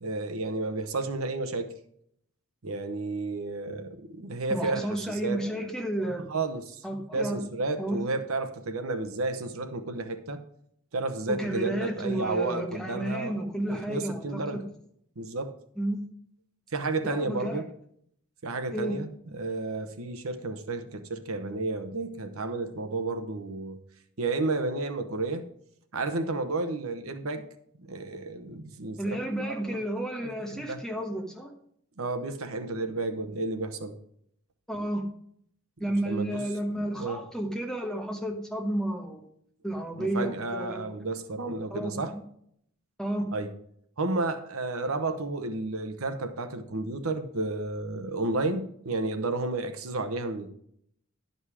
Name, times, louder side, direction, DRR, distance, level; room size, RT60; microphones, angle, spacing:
voice 1, 0.0-1.7 2.6-5.5 6.3-6.8 7.1-10.4 10.9-13.4 13.7-14.6 15.2-15.5 16.7-17.7 18.4-19.1 19.3-23.8 24.2-25.5 25.9-27.4 27.8-29.8 30.5-30.8 32.0-33.9 36.0-36.4 37.0-37.2 40.0-42.1 43.3-43.5 44.0-50.5, right 3 dB, 75° right, 8 dB, 0.9 m, -32 dB
voice 2, 4.5-6.2 6.8-7.4 7.8-8.0 11.3-14.6 15.8-16.0 17.0-17.6 18.7-19.0 29.0-31.5 34.7-35.1 35.8-39.3 39.6-40.8 41.7-42.2 43.0-43.3, right 1 dB, 5° left, 2 dB, 1.1 m, -32 dB
11.0 x 5.3 x 4.9 m, 0.68 s
head